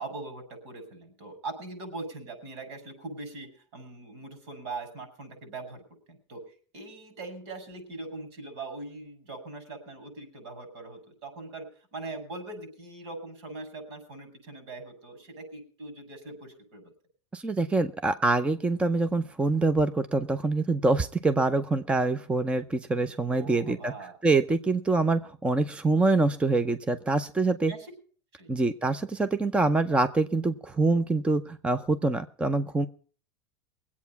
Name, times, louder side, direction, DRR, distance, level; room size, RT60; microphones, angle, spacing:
voice 1, 0.0-5.8 6.1-6.4 6.7-11.7 11.9-16.8 23.3-24.1 27.7-27.9 28.4-28.5, right 3 dB, 70° right, 6 dB, 6.8 m, -41 dB
voice 2, 17.3-23.9 24.2-27.7 28.5-32.9, right 3 dB, 5° right, 12 dB, 0.6 m, -25 dB
21.5 x 8.5 x 5.7 m, 0.41 s
supercardioid pair, 145°, 15 cm